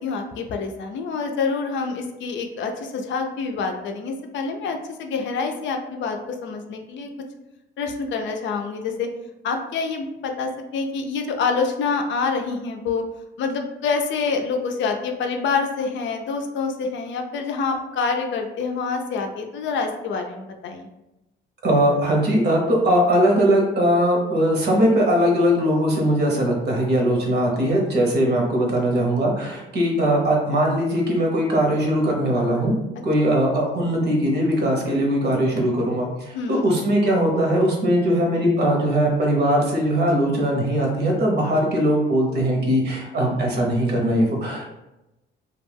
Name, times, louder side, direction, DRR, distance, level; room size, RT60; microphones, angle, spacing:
voice 1, 0.0-7.1 7.8-9.1 9.4-13.0 13.4-20.9 36.3-36.6, left 4 dB, 70° left, 4 dB, 0.4 m, -26 dB
voice 2, 21.6-32.7 33.0-44.7, equal, 55° right, -1 dB, 0.9 m, -20 dB
2.3 x 2.1 x 3.3 m, 0.94 s
cardioid pair, 90°, 20 cm